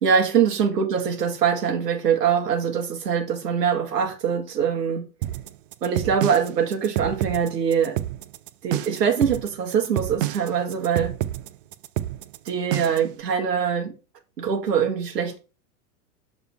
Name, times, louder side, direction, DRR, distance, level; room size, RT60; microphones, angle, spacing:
voice 1, 0.0-5.0 5.8-8.0 8.6-11.1 12.4-13.9 14.4-15.4, right 7 dB, 75° right, 1.7 m, -23 dB
sound 1, 5.2-13.1, right 14 dB, 40° right, 0.4 m, -29 dB
6.9 x 4.0 x 5.6 m
hypercardioid pair, 105°, 48 cm